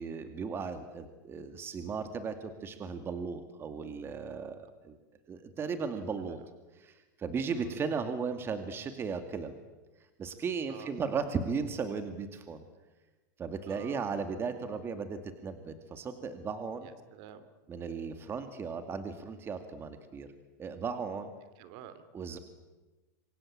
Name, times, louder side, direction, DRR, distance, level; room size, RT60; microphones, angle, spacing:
voice 1, 0.0-5.0 5.3-6.4 6.8-9.5 10.2-12.6 13.4-16.9 17.7-20.3 20.6-21.3 22.1-22.4, right 5 dB, 25° right, 8 dB, 2.2 m, -36 dB
voice 2, 6.0-6.4 7.6-7.8 10.7-11.3 13.7-14.1 16.8-17.4 21.6-22.1, right 9 dB, 50° right, 12 dB, 2.8 m, -49 dB
27.5 x 23.5 x 8.8 m, 1.2 s
supercardioid pair, 135°, 10 cm